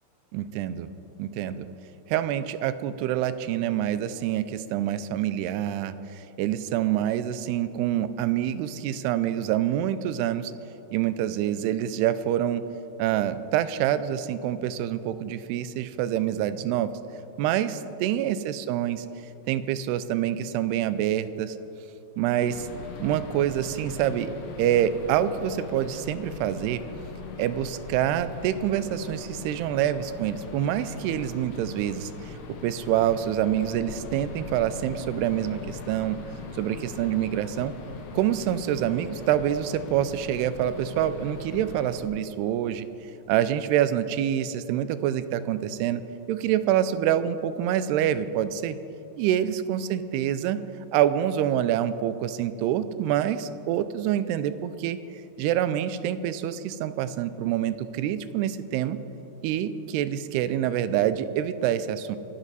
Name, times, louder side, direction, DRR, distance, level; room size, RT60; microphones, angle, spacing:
voice 1, 0.3-0.9 1.2-1.7 2.1-10.5 10.9-12.6 13.0-16.9 17.4-19.1 19.5-21.6 22.2-22.7 23.0-24.3 24.6-26.8 27.4-32.3 32.6-36.2 36.6-37.7 38.1-42.9 43.3-46.0 46.3-48.8 49.2-50.6 50.9-55.0 55.4-59.0 59.4-62.2, right 11 dB, 90° right, 13 dB, 2.7 m, -26 dB
sound 1, 22.4-42.0, left 4 dB, 65° left, 2.7 m, -41 dB
24.0 x 11.5 x 4.1 m, 2.8 s
omnidirectional pair, 4.6 m